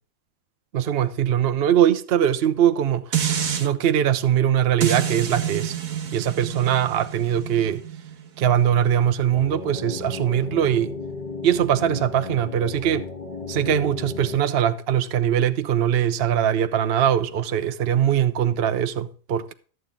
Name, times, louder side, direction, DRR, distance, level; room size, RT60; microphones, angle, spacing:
voice 1, 0.7-5.8 6.1-7.8 8.4-10.9 11.4-13.1 13.5-19.5, right 9 dB, 55° right, 0.8 m, -21 dB
sound 1, 3.1-3.7 4.8-10.0 10.4-10.5, right 9 dB, 80° right, 1.6 m, -28 dB
sound 2, 9.3-14.4, left 4 dB, 35° left, 1.3 m, -34 dB
13.0 x 7.7 x 3.7 m
omnidirectional pair, 1.4 m